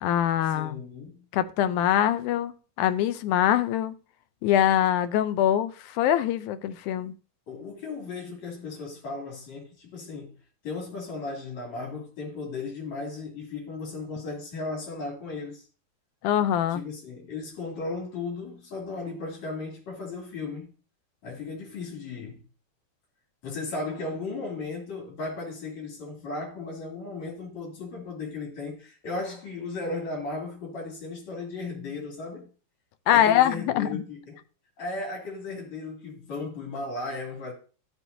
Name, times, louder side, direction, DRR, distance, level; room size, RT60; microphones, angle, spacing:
voice 1, 0.0-0.8 1.3-2.5 2.8-4.0 4.4-7.1 16.2-16.8 33.1-34.0, left 11 dB, 85° left, 2.1 m, -23 dB
voice 2, 0.5-1.2 7.5-10.4 10.6-15.6 16.7-20.7 21.2-22.4 23.4-32.5 33.1-34.4 34.8-37.5, left 3 dB, 65° left, 3.9 m, -36 dB
13.0 x 6.0 x 2.7 m
omnidirectional pair, 3.5 m